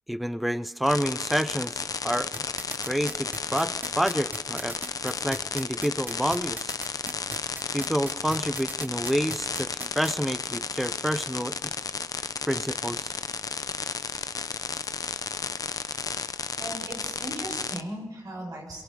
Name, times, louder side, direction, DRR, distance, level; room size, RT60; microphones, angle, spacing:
voice 1, 0.1-2.4 2.8-4.8 5.0-6.8 7.7-11.7 12.4-13.1, equal, ahead, 13 dB, 0.6 m, -29 dB
sound 1, 0.8-17.8, left 5 dB, 75° left, 0.7 m, -33 dB
sound 2, 2.3-10.1, right 1 dB, 30° right, 1.4 m, -38 dB
voice 2, 16.6-18.8, right 1 dB, 90° right, -1 dB, 8.0 m, -37 dB
23.0 x 22.5 x 5.3 m, 0.97 s
wide cardioid pair, 70°, 6 cm